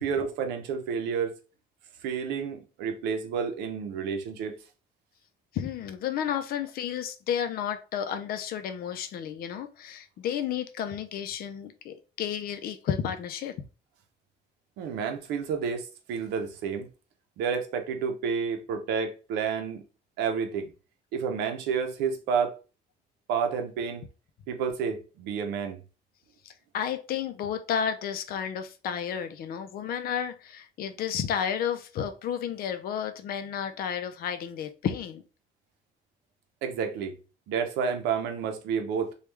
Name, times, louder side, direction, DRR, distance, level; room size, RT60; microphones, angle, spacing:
voice 1, 0.0-1.4 2.0-4.6 14.8-16.9 17.4-19.8 20.2-20.7 21.1-22.6 23.3-24.0 24.5-25.8 36.6-37.2 37.5-39.1, right 6 dB, 90° right, 0.6 m, -30 dB
voice 2, 5.5-13.5 26.4-35.2, left 8 dB, 60° left, 0.5 m, -32 dB
3.3 x 2.3 x 3.1 m
cardioid pair, 110°, 17 cm